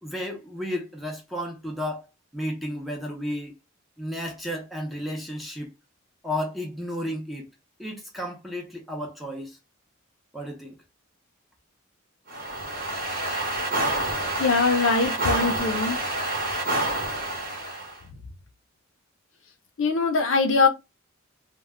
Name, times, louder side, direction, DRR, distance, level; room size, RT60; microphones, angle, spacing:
voice 1, 0.0-2.1 2.3-3.5 4.0-5.7 6.2-7.5 7.8-9.6 10.3-10.8, equal, ahead, 0.6 m, -33 dB
sound 1, 12.3-18.0, right 1 dB, 45° right, 0.9 m, -28 dB
voice 2, 14.4-16.0 19.8-20.7, left 4 dB, 65° left, 0.5 m, -22 dB
2.1 x 2.1 x 3.6 m
head